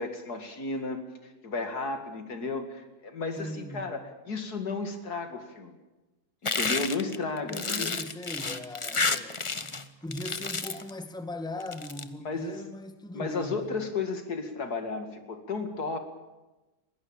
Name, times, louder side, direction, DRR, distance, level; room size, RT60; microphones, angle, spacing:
voice 1, 0.0-5.8 6.4-7.9 12.2-12.6 13.1-16.0, left 3 dB, 75° left, 2.7 m, -33 dB
voice 2, 3.4-3.9 7.5-13.7, left 1 dB, 5° left, 1.7 m, -39 dB
sound 1, 6.5-9.8 10.1-10.9 11.6-12.0, left 4 dB, 25° left, 0.8 m, -30 dB
21.0 x 18.0 x 8.8 m
omnidirectional pair, 1.7 m